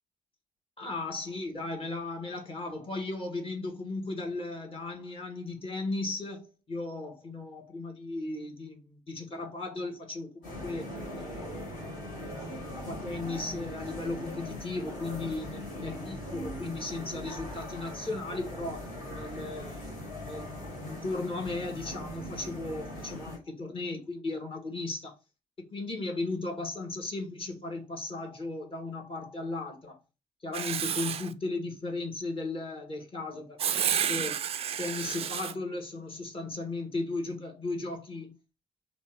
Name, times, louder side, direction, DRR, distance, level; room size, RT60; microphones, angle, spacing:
voice 1, 0.8-11.6 12.6-19.9 20.3-20.5 20.8-25.2 25.6-30.0 30.4-34.4 34.8-38.4, left 2 dB, 30° left, 1.3 m, -36 dB
sound 1, 10.4-23.4, left 1 dB, 55° left, 2.0 m, -40 dB
Writing, 30.5-31.3 33.6-35.5, right 9 dB, 35° right, 0.4 m, -30 dB
3.3 x 3.0 x 3.3 m
figure-of-eight pair, 45°, 18 cm